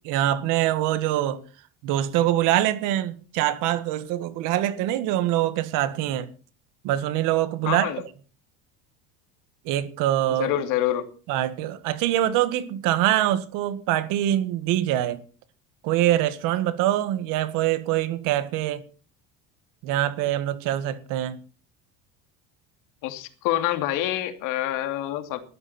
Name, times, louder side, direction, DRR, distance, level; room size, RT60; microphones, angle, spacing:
voice 1, 0.0-1.4 1.8-6.3 6.8-7.9 9.7-10.5 11.3-15.2 15.8-18.8 19.8-21.4, right 13 dB, 65° right, 1.8 m, -24 dB
voice 2, 7.6-8.0 10.3-11.1 23.0-25.4, left 13 dB, 65° left, 2.7 m, -26 dB
19.5 x 13.5 x 4.4 m
cardioid pair, 155°, 34 cm